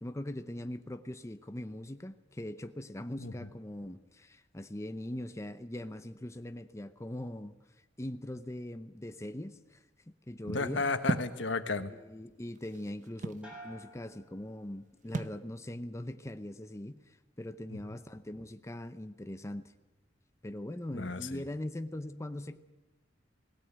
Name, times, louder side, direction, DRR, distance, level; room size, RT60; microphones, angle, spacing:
voice 1, 0.0-7.5 8.0-9.8 10.3-10.9 11.9-19.7 20.4-22.6, left 1 dB, 15° left, 0.7 m, -41 dB
voice 2, 10.5-11.9 20.9-21.4, left 3 dB, 85° left, 1.4 m, -33 dB
sound 1, 11.1-11.4 12.3-13.5 15.1-15.4, right 2 dB, 45° right, 0.7 m, -34 dB
sound 2, 13.4-15.2 15.6-16.1, right 1 dB, 5° right, 6.9 m, -53 dB
18.5 x 17.0 x 8.9 m
head